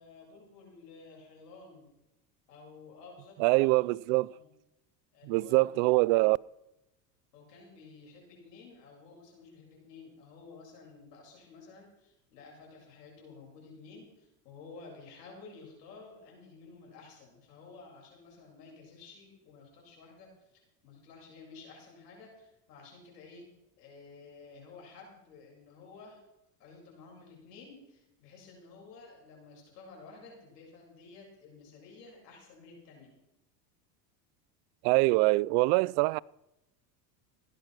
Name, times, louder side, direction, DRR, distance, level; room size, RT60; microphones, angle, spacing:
voice 1, 0.0-1.9 2.5-3.9 4.3-4.5 5.1-6.0 7.3-23.5 23.8-26.2 26.6-33.1, left 4 dB, 85° left, 7.7 m, -52 dB
voice 2, 3.4-4.3 5.2-6.4 34.8-36.2, right 23 dB, 65° right, 0.5 m, -24 dB
17.0 x 10.5 x 6.1 m
supercardioid pair, 110°, 47 cm